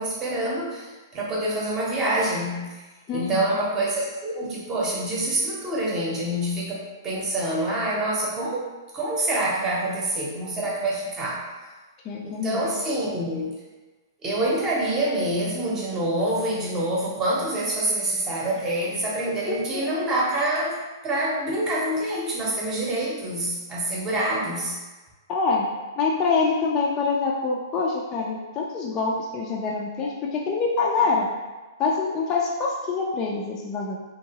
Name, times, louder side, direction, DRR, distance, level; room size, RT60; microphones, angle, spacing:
voice 1, 0.0-2.7 3.1-8.7 8.9-11.5 12.2-13.5 14.2-24.8, right 1 dB, 20° right, -4 dB, 0.8 m, -26 dB
voice 2, 3.1-3.6 12.0-12.8 19.5-19.8 25.3-31.3 31.8-34.0, left 4 dB, 25° left, -2 dB, 0.4 m, -25 dB
2.9 x 2.7 x 2.8 m, 1.2 s
hypercardioid pair, 135°, 2 cm